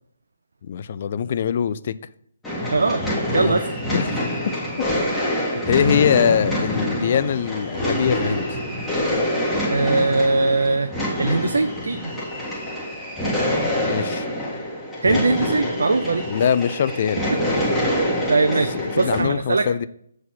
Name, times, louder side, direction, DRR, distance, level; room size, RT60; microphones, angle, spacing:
voice 1, 0.7-2.0 3.4-3.6 3.9-4.3 5.7-8.6 13.9-14.3 15.0-15.2 16.3-17.2 18.7-19.9, left 8 dB, 50° left, 0.4 m, -22 dB
sound 1, 2.4-19.2, equal, 5° left, 1.8 m, -25 dB
voice 2, 2.7-3.0 3.3-3.8 9.7-10.9 11.2-12.1 15.0-16.2 17.3-17.7 18.3-19.7, right 3 dB, 75° right, 0.5 m, -21 dB
7.2 x 4.2 x 6.2 m
figure-of-eight pair, 145°, 0 cm